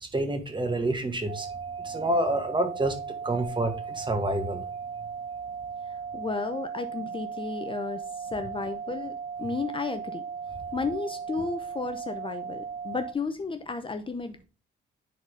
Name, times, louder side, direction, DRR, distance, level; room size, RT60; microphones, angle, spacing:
voice 1, 0.0-1.5 1.8-4.6, right 1 dB, 25° right, 6 dB, 1.8 m, -28 dB
sound 1, 1.3-13.1, right 6 dB, 55° right, 1.3 m, -37 dB
voice 2, 6.1-9.1 9.4-10.2 10.7-14.4, left 4 dB, 25° left, 8 dB, 0.7 m, -33 dB
10.0 x 4.1 x 3.4 m, 0.34 s
cardioid pair, 90°, 20 cm